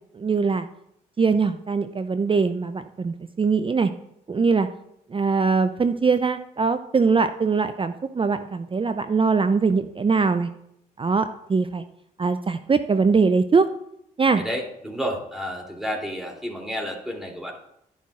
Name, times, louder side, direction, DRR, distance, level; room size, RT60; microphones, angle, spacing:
voice 1, 0.1-0.7 1.2-3.9 4.3-4.7 5.1-10.5 11.0-11.8 12.2-13.7 14.2-14.4, right 4 dB, 30° right, 10 dB, 0.6 m, -22 dB
voice 2, 14.3-17.5, equal, ahead, 0 dB, 3.0 m, -31 dB
11.0 x 10.5 x 2.5 m, 0.75 s
hypercardioid pair, 45°, 19 cm